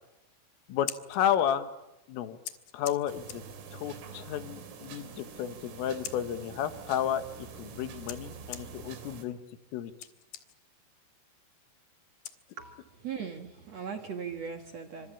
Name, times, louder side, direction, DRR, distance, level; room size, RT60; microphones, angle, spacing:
Scissors, 0.6-13.0, left 11 dB, 65° left, 2.7 m, -48 dB
voice 1, 0.7-1.7 2.1-2.4 2.7-3.4 3.7-9.4 9.7-9.9, left 10 dB, 80° left, 10 dB, 4.2 m, -32 dB
sound 1, 3.1-9.2, right 6 dB, 85° right, 5.8 m, -46 dB
voice 2, 12.6-15.1, right 6 dB, 65° right, 6 dB, 1.6 m, -39 dB
28.5 x 26.0 x 7.3 m, 0.94 s
omnidirectional pair, 5.8 m